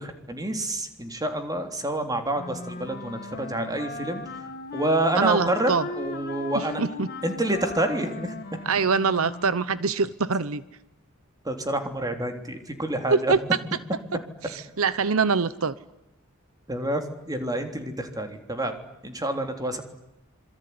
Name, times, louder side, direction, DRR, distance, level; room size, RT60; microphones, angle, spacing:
voice 1, 0.0-4.2 4.7-5.7 6.0-8.3 11.4-13.3 16.7-18.8 19.0-19.8, right 1 dB, 20° right, 6 dB, 3.4 m, -28 dB
Wind instrument woodwind instrument, 2.4-9.9, left 3 dB, 45° left, 2.2 m, -37 dB
voice 2, 5.2-5.9 6.5-7.1 8.6-10.6 13.1-13.4 14.1-15.7, right 5 dB, 75° right, 15 dB, 0.9 m, -24 dB
26.5 x 22.5 x 9.6 m, 0.89 s
head